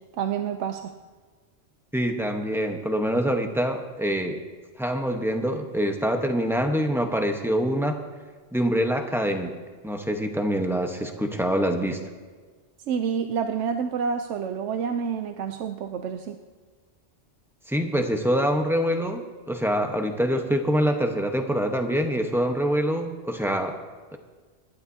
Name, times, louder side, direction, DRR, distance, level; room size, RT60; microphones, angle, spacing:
voice 1, 0.2-0.9 12.9-16.4, right 7 dB, 90° right, 7 dB, 0.9 m, -28 dB
voice 2, 1.9-4.4 4.8-8.0 8.5-9.6 9.8-12.0 17.7-23.8 24.1-24.2, equal, ahead, 4 dB, 0.9 m, -25 dB
26.5 x 11.5 x 2.8 m, 1.4 s
omnidirectional pair, 1.2 m